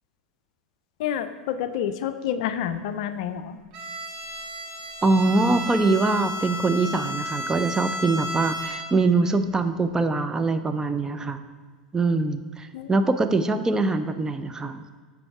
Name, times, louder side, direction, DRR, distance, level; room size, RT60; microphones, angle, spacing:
voice 1, 1.0-3.6 12.7-12.9, left 9 dB, 60° left, 11 dB, 0.4 m, -29 dB
Bowed string instrument, 3.7-9.2, equal, 55° right, 1.1 m, -33 dB
voice 2, 5.0-11.4 11.9-14.9, right 3 dB, 15° right, 9 dB, 0.4 m, -23 dB
6.8 x 4.7 x 3.5 m, 1.5 s
figure-of-eight pair, 85°, 4 cm